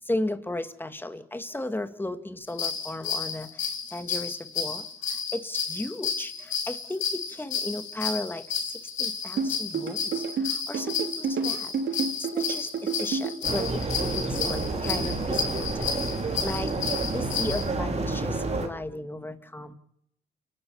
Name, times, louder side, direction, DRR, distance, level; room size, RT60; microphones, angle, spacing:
voice 1, 0.1-4.9 5.3-7.0 7.3-8.4 9.0-12.7 13.0-13.7 14.0-15.9 16.4-19.7, left 1 dB, 10° left, 9 dB, 2.2 m, -35 dB
sound 1, 2.5-17.6, left 6 dB, 85° left, 4.9 m, -32 dB
sound 2, 9.4-13.3, right 5 dB, 65° right, 4.2 m, -29 dB
sound 3, 13.4-18.7, right 3 dB, 35° right, 4.5 m, -29 dB
29.5 x 13.0 x 7.3 m, 0.75 s
cardioid pair, 90°, 20 cm